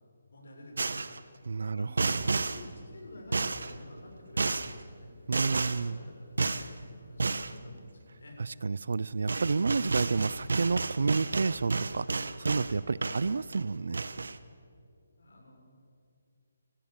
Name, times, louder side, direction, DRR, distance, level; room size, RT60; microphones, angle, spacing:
voice 1, 0.3-1.2 1.7-5.1 5.4-8.4 13.0-13.2 15.2-15.7, left 1 dB, 75° left, 1 dB, 6.6 m, -50 dB
sound 1, 0.8-1.2 2.0-2.6 3.3-3.7 4.4-4.7 5.3-5.8 6.4-6.7 7.2-7.5 8.9-9.0 9.3-12.7 13.0-13.6 13.9-14.4, right 3 dB, 75° right, 1.1 m, -31 dB
voice 2, 1.5-2.4 5.3-6.0 8.4-14.0, right 4 dB, 60° right, 21 dB, 0.4 m, -30 dB
29.5 x 14.5 x 7.4 m, 2.3 s
hypercardioid pair, 175°, 0 cm